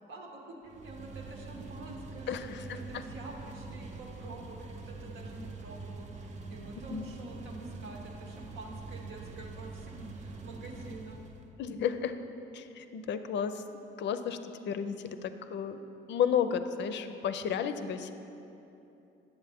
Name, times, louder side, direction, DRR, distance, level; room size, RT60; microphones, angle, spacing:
voice 1, 0.0-11.3, right 2 dB, 80° right, 0 dB, 1.1 m, -47 dB
sound 1, 0.6-11.5, right 3 dB, 35° right, 0.5 m, -45 dB
voice 2, 2.3-3.0 6.9-7.1 11.6-12.1 12.5-13.6 14.0-15.8 16.1-18.1, left 8 dB, 65° left, 9 dB, 0.4 m, -32 dB
7.9 x 6.6 x 3.5 m, 2.9 s
cardioid pair, 90°, 20 cm